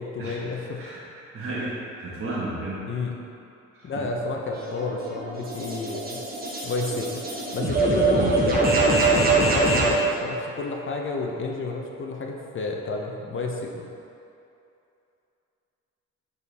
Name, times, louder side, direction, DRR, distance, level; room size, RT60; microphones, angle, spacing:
voice 1, 0.0-0.8 2.9-3.2 3.8-6.2 6.6-7.2 7.5-13.9, left 3 dB, 40° left, 1 dB, 0.6 m, -30 dB
voice 2, 0.8-2.8 3.7-4.1 8.1-8.4, right 2 dB, 45° right, -7 dB, 1.1 m, -33 dB
sound 1, 4.5-10.0, right 3 dB, 30° right, 1.1 m, -23 dB
5.1 x 4.4 x 4.1 m, 2.7 s
cardioid pair, 90°, 30 cm